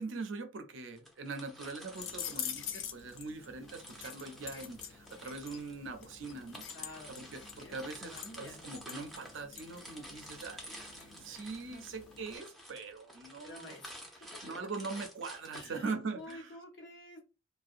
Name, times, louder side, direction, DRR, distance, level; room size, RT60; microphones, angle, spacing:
voice 1, 0.0-6.6 7.1-13.7 14.2-16.6, right 3 dB, 80° right, 0.5 m, -42 dB
sound 1, 1.0-3.2 3.6-16.3, equal, ahead, 0.5 m, -51 dB
sound 2, 2.0-12.4, left 8 dB, 90° left, 0.4 m, -46 dB
voice 2, 6.7-7.3 7.6-7.7 8.1-8.7 11.3-11.8 13.4-14.6 15.5-17.2, left 2 dB, 70° left, 0.8 m, -51 dB
2.6 x 2.1 x 2.4 m
head